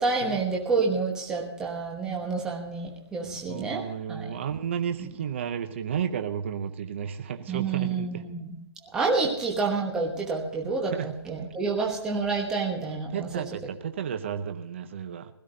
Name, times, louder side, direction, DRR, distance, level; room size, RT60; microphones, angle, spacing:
voice 1, 0.0-3.8 4.1-4.3 5.0-5.1 7.5-8.6 8.9-13.4, right 4 dB, 5° right, -1 dB, 1.1 m, -28 dB
voice 2, 3.5-8.1 10.9-11.1 13.1-15.3, right 8 dB, 25° right, 9 dB, 0.7 m, -32 dB
16.5 x 13.0 x 3.9 m, 0.77 s
hypercardioid pair, 175°, 14 cm